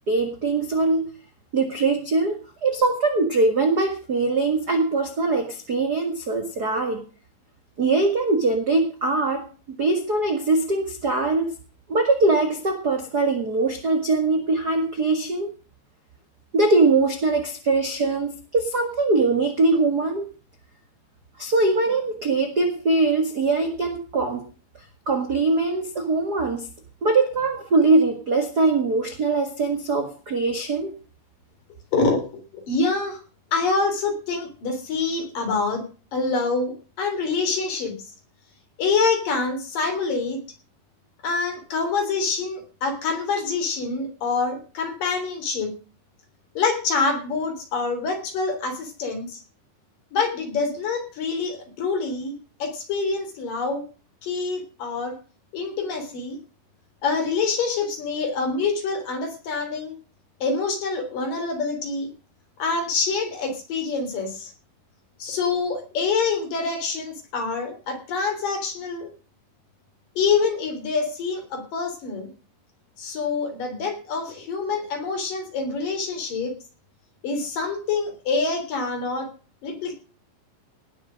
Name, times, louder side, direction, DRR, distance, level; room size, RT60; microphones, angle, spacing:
voice 1, 0.1-1.1 1.5-7.0 7.8-9.5 9.8-11.5 11.9-15.5 16.5-20.2 21.4-24.4 25.1-26.7 27.0-30.9, right 3 dB, 65° right, 5 dB, 0.9 m, -22 dB
voice 2, 31.9-33.2 33.5-35.8 36.1-37.9 38.8-40.4 41.2-45.7 46.5-49.4 50.1-52.3 52.6-53.8 54.2-55.1 55.5-56.4 57.0-60.0 60.4-62.1 62.6-64.5 65.2-69.1 70.2-72.3 73.0-76.5 77.2-79.3 79.6-80.0, left 4 dB, 55° left, 5 dB, 5.0 m, -26 dB
18.5 x 7.1 x 6.3 m, 0.36 s
omnidirectional pair, 4.8 m